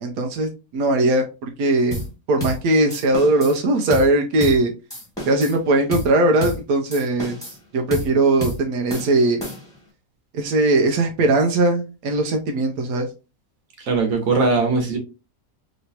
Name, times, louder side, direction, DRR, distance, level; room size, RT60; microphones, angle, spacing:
voice 1, 0.0-2.0 2.3-4.7 5.3-9.4 10.3-13.1, right 2 dB, 90° right, 3 dB, 1.1 m, -20 dB
sound 1, 1.9-2.1 2.4-2.6 2.9-3.6 3.9-4.1 4.4-4.6 4.9-5.6 5.9-6.1 6.4-6.6 6.9-7.6 7.9-8.1 8.4-8.6 8.9-9.8, equal, 5° left, 1.4 m, -30 dB
voice 2, 13.9-15.0, right 3 dB, 65° right, 3 dB, 1.3 m, -19 dB
3.1 x 3.0 x 2.7 m, 0.30 s
omnidirectional pair, 1.5 m